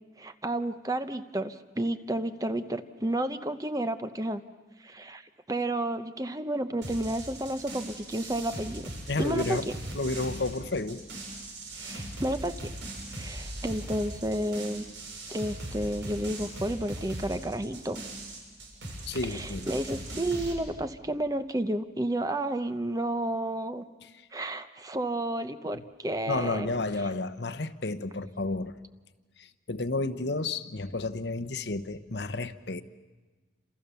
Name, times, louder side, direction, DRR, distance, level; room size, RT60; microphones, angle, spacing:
voice 1, 0.2-4.4 4.8-5.2 5.5-8.9 9.2-9.6 11.8-12.7 13.1-14.9 15.3-18.0 19.2-23.8 24.3-26.7, right 1 dB, 20° right, 10 dB, 0.8 m, -31 dB
sound 1, 6.8-20.5, right 1 dB, 90° right, 6.8 m, -40 dB
voice 2, 9.1-9.7 9.9-11.0 19.1-19.7 24.2-24.3 25.7-25.8 26.3-28.7 29.4-32.8, left 2 dB, 65° left, 10 dB, 1.0 m, -31 dB
29.0 x 27.5 x 7.0 m, 1.3 s
head